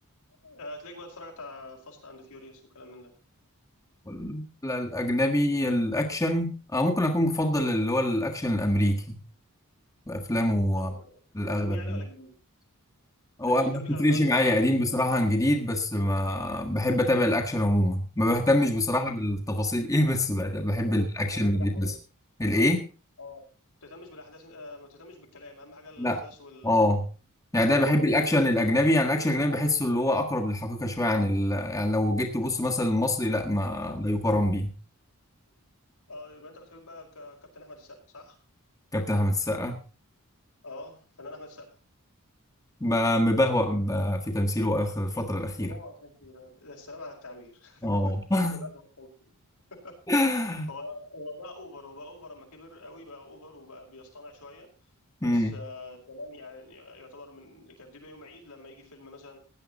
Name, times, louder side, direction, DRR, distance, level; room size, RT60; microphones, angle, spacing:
voice 1, 0.4-3.1 10.7-11.2 11.4-12.3 13.5-15.2 18.9-19.1 20.9-21.9 23.2-23.5 23.8-26.8 27.7-28.4 36.1-38.4 40.6-41.7 45.5-48.2 48.5-49.3 49.7-50.0 50.7-54.7 55.2-59.4, left 2 dB, 85° left, 0 dB, 5.2 m, -45 dB
voice 2, 4.0-9.2 10.1-10.9 11.3-12.0 13.4-21.9 22.4-22.9 26.0-26.2 26.6-27.0 27.5-34.7 38.9-39.8 42.8-45.7 47.8-48.6 50.1-50.7 55.2-55.5, left 1 dB, 15° left, 1 dB, 1.5 m, -25 dB
16.5 x 10.5 x 4.0 m, 0.34 s
head